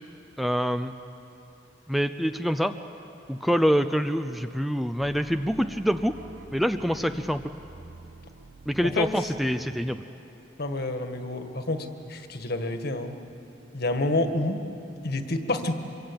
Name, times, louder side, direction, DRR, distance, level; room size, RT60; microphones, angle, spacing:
voice 1, 0.4-0.9 1.9-2.7 3.3-6.2 6.5-7.4 8.7-10.0, equal, ahead, 9 dB, 0.5 m, -25 dB
sound 1, 5.0-10.9, right 3 dB, 80° right, 1.2 m, -49 dB
voice 2, 10.6-13.1 13.7-14.6 15.0-15.8, left 2 dB, 55° left, 6 dB, 1.7 m, -28 dB
25.0 x 24.0 x 8.7 m, 2.8 s
head